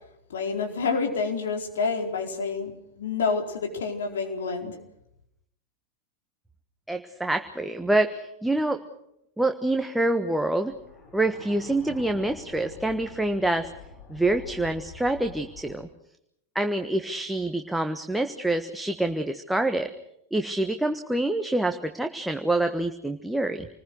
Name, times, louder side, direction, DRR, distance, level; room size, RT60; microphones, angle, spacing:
voice 1, 0.3-4.8, left 4 dB, 65° left, 3 dB, 4.4 m, -28 dB
voice 2, 6.9-8.8 9.4-10.7 11.1-13.7 14.1-15.9 16.5-19.9 20.3-23.7, right 2 dB, 5° right, 6 dB, 1.3 m, -26 dB
sound 1, 10.7-15.8, left 3 dB, 30° left, 6.3 m, -46 dB
28.5 x 20.5 x 6.5 m, 0.77 s
figure-of-eight pair, 90°, 0 cm